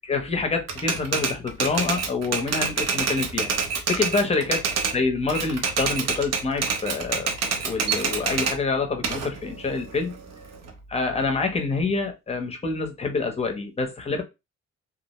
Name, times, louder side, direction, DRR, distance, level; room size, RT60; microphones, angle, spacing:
voice 1, 0.1-3.5 3.9-4.6 4.9-7.3 7.6-10.1 10.9-14.2, left 4 dB, 20° left, 0.7 m, -26 dB
Typewriter, 0.7-5.0 5.3-8.6 9.0-10.7, right 5 dB, 55° right, 0.8 m, -26 dB
2.4 x 2.1 x 2.9 m
cardioid pair, 90°, 30 cm